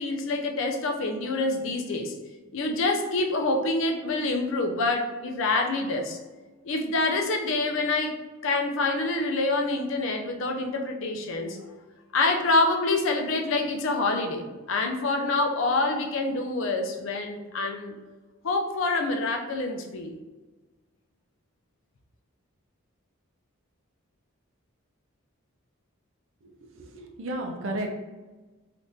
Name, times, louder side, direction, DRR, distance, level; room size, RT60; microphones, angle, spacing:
voice 1, 0.0-2.1 2.5-6.2 6.6-8.2 8.4-11.6 12.1-18.0 18.4-20.1, left 2 dB, 65° left, 4 dB, 0.4 m, -26 dB
voice 2, 26.8-27.9, right 1 dB, 65° right, 3 dB, 0.4 m, -32 dB
3.5 x 2.5 x 2.7 m, 1.2 s
head